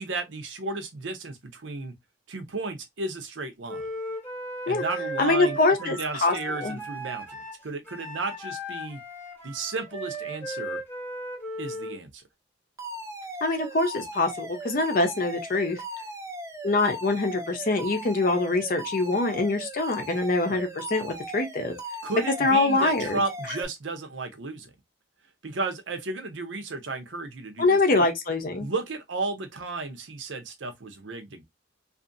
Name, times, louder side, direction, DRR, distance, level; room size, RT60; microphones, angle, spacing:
voice 1, 0.0-1.9 2.3-3.9 4.7-9.0 9.4-10.8 11.6-12.2 20.5-20.6 22.0-24.7 25.4-28.0 28.6-31.4, right 3 dB, 70° right, 0.7 m, -33 dB
Wind instrument woodwind instrument, 3.7-12.0, right 1 dB, 10° left, 1.0 m, -36 dB
voice 2, 5.2-6.3 6.6-6.8 13.4-15.8 16.6-21.8 22.4-23.2 27.6-28.7, left 2 dB, 45° left, 0.6 m, -24 dB
Alarm, 12.8-23.6, right 1 dB, 15° right, 0.4 m, -38 dB
2.7 x 2.5 x 2.5 m
head